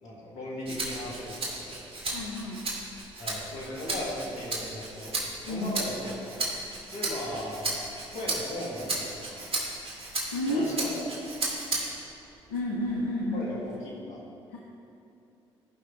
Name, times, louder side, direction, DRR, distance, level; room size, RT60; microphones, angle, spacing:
voice 1, 0.0-2.2 3.2-5.2 5.4-6.4 6.9-9.5 10.5-11.4 13.3-14.2, left 1 dB, 65° left, -4 dB, 2.4 m, -37 dB
Rattle (instrument), 0.7-12.1 12.6-13.7, right 2 dB, 45° right, 2.3 m, -35 dB
voice 2, 2.1-2.7 5.5-5.8 10.3-11.1 12.5-13.6 14.5-14.6, left 1 dB, 80° left, -2 dB, 0.8 m, -31 dB
13.5 x 5.6 x 3.8 m, 2.7 s
hypercardioid pair, 45°, 13 cm